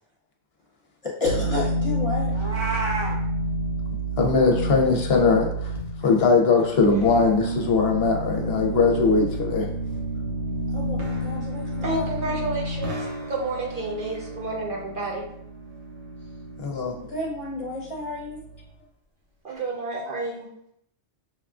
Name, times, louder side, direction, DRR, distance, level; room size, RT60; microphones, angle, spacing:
voice 1, 1.0-2.3 10.7-12.3 17.1-18.4, left 2 dB, 35° left, -4 dB, 0.7 m, -31 dB
sound 1, 1.2-18.6, right 1 dB, 85° right, 1.1 m, -30 dB
Meow, 2.3-3.1, right 3 dB, 30° right, 0.7 m, -29 dB
voice 2, 4.2-5.7 6.0-9.7 16.6-17.0, left 4 dB, 65° left, 2 dB, 0.8 m, -20 dB
voice 3, 11.8-12.9 13.3-15.2 19.4-20.5, right 2 dB, 50° right, -3 dB, 0.9 m, -30 dB
5.9 x 2.3 x 2.4 m, 0.72 s
omnidirectional pair, 1.2 m